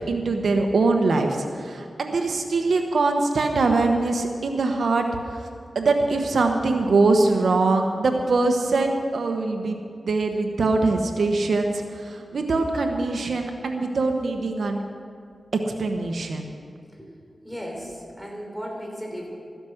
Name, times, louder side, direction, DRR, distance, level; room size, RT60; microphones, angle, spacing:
voice 1, 0.1-5.0 5.7-9.8 10.0-14.8 15.7-16.5, right 3 dB, 80° right, 4 dB, 1.0 m, -22 dB
voice 2, 17.4-19.3, equal, ahead, -1 dB, 3.7 m, -35 dB
14.0 x 10.5 x 6.4 m, 2.2 s
cardioid pair, 65°, 0 cm